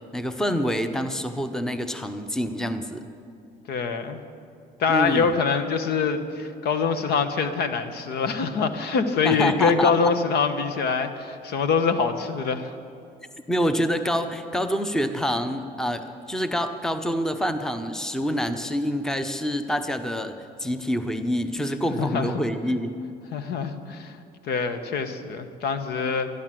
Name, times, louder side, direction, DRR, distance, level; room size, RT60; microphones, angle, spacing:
voice 1, 0.1-3.0 4.9-5.3 9.2-10.1 13.5-20.3 20.6-22.9, equal, 5° left, 9 dB, 0.7 m, -26 dB
voice 2, 3.7-4.2 4.8-12.7 22.0-22.4 23.3-24.2 24.5-26.4, left 5 dB, 70° left, 9 dB, 1.1 m, -24 dB
13.0 x 11.5 x 7.5 m, 2.5 s
cardioid pair, 110°, 17 cm